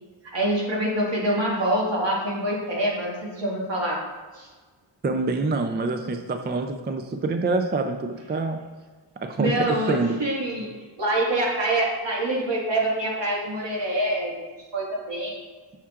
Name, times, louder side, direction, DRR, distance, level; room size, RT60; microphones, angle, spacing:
voice 1, 0.2-4.0 4.3-4.5 9.4-10.7 11.0-14.3 14.7-15.4, right 1 dB, 65° right, -3 dB, 1.8 m, -25 dB
voice 2, 5.0-8.6 9.2-10.2, right 3 dB, 25° right, 6 dB, 0.3 m, -26 dB
7.1 x 5.8 x 2.4 m, 1.4 s
wide cardioid pair, 120°, 46 cm